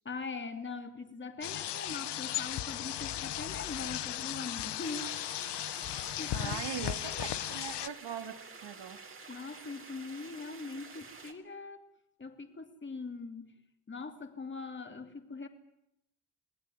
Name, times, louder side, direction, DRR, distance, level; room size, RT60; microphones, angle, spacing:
voice 1, 0.0-5.1 6.2-6.6 9.3-11.8 12.2-13.5 13.9-15.5, left 4 dB, 30° left, 6 dB, 2.9 m, -42 dB
sound 1, 1.4-7.9, left 12 dB, 80° left, 0.9 m, -36 dB
sound 2, 4.8-11.3, right 4 dB, 30° right, 3.1 m, -50 dB
voice 2, 6.3-9.2, right 9 dB, 85° right, 7 dB, 3.0 m, -41 dB
28.0 x 20.0 x 9.3 m, 0.82 s
wide cardioid pair, 145°, 40 cm